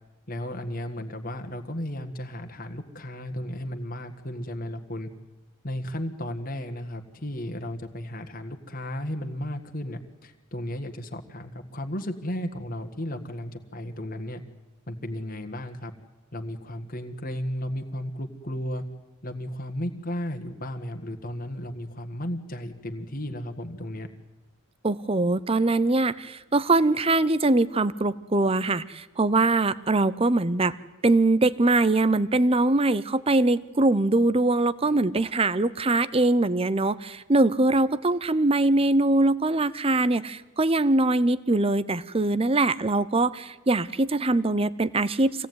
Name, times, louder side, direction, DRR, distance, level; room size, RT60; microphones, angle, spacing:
voice 1, 0.3-5.1 5.6-14.4 14.9-15.9 16.3-18.8 19.2-24.1, left 1 dB, 40° left, 6 dB, 1.6 m, -34 dB
voice 2, 24.8-30.7 31.0-45.5, right 2 dB, 25° right, 16 dB, 0.7 m, -22 dB
25.5 x 17.5 x 9.5 m, 1.2 s
head